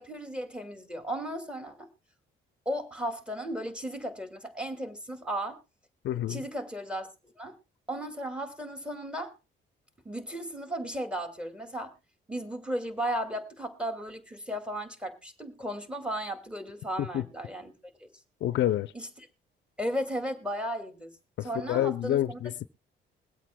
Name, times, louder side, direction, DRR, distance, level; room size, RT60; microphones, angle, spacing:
voice 1, 0.0-1.9 2.7-5.6 6.3-7.6 7.9-9.3 10.0-11.9 12.3-17.7 18.0-18.1 18.9-19.1 19.8-21.1 21.4-22.4, right 1 dB, 5° right, 2.2 m, -35 dB
voice 2, 6.0-6.4 17.0-17.2 18.4-18.9 21.4-22.7, left 12 dB, 65° left, 0.6 m, -28 dB
22.5 x 8.3 x 2.2 m
cardioid pair, 90°, 20 cm